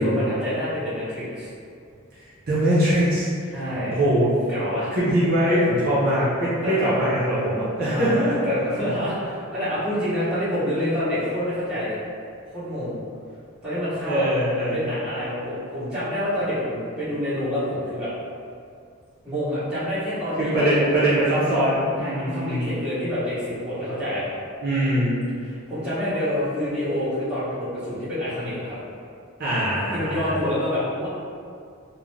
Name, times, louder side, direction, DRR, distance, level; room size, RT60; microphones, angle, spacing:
voice 1, 0.0-1.5 3.5-4.0 4.5-4.9 6.6-6.7 7.8-12.0 12.5-13.0 13.6-14.3 14.5-18.1 19.2-20.9 22.0-24.3 25.4-28.8 29.9-31.1, left 1 dB, 5° right, -15 dB, 0.9 m, -27 dB
voice 2, 2.5-3.5 3.9-4.3 4.9-8.3 14.0-14.8 20.4-22.7 24.6-25.2 29.4-30.4, right 1 dB, 45° right, -10 dB, 0.6 m, -22 dB
2.4 x 2.0 x 3.1 m, 2.3 s
head